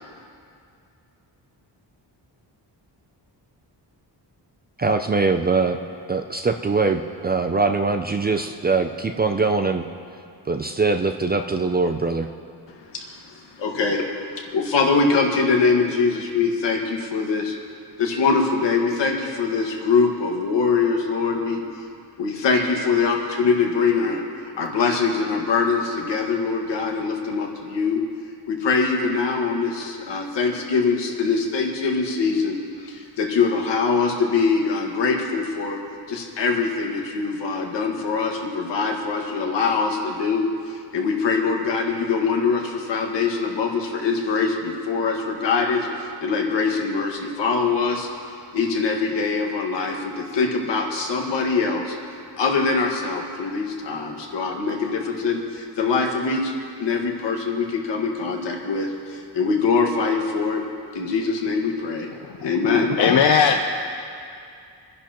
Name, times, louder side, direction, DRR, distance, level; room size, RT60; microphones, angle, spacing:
voice 1, 4.8-5.8 6.1-9.9 10.5-12.3, right 4 dB, 25° right, 6 dB, 0.3 m, -22 dB
voice 2, 12.9-17.6 18.0-21.6 22.2-24.2 24.6-28.0 28.5-35.8 36.1-48.1 48.5-52.0 52.4-56.5 56.8-60.6 60.9-62.1 62.4-62.9, left 4 dB, 80° left, 1 dB, 1.8 m, -23 dB
voice 3, 62.2-63.9, left 6 dB, 60° left, 3 dB, 0.7 m, -20 dB
28.0 x 10.5 x 3.0 m, 2.4 s
wide cardioid pair, 180°, 42 cm